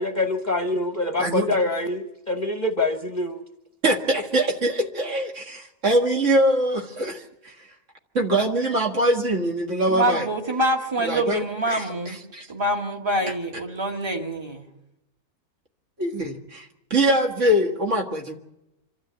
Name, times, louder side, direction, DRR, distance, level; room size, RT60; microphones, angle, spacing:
voice 1, 0.0-3.4, left 2 dB, 35° left, 6 dB, 1.0 m, -25 dB
voice 2, 3.8-7.5 8.1-10.3 11.0-11.4 11.7-12.5 16.0-18.3, right 1 dB, 55° right, 3 dB, 2.1 m, -23 dB
voice 3, 9.9-12.2 12.5-14.7, right 1 dB, 20° right, 2 dB, 1.9 m, -25 dB
26.0 x 13.0 x 8.0 m, 0.91 s
omnidirectional pair, 1.6 m